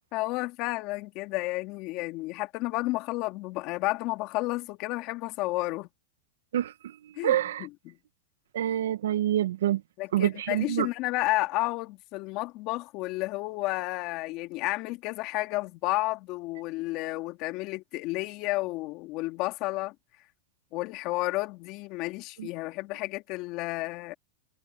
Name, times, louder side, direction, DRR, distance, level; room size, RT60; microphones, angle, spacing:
voice 1, 0.1-5.9 7.2-8.0 10.0-19.9 20.7-24.1, left 20 dB, 45° left, 2.5 m, -31 dB
voice 2, 7.2-7.7 8.5-9.8 10.1-10.9 22.4-22.5, right 12 dB, 85° right, 1.0 m, -26 dB
supercardioid pair, 130°, 0 cm